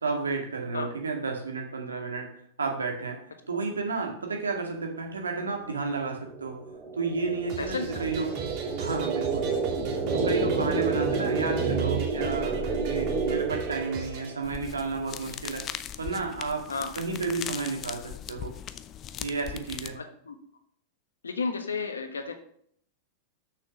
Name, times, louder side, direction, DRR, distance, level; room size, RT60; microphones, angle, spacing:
voice 1, 0.0-2.3 2.6-3.2 3.5-6.6 6.9-8.3 8.8-9.5 10.1-15.6 16.0-16.7 16.9-18.5 19.2-20.0, right 4 dB, 85° right, 2 dB, 2.1 m, -31 dB
sound 1, 5.5-14.4, right 4 dB, 30° right, 2.3 m, -29 dB
sound 2, 7.5-14.3, right 5 dB, 50° right, 2.4 m, -41 dB
sound 3, 14.4-20.0, left 10 dB, 35° left, 0.6 m, -39 dB
voice 2, 19.9-20.4 21.2-22.3, left 4 dB, 85° left, 7 dB, 1.2 m, -32 dB
6.5 x 6.3 x 6.3 m, 0.65 s
hypercardioid pair, 100°, 0 cm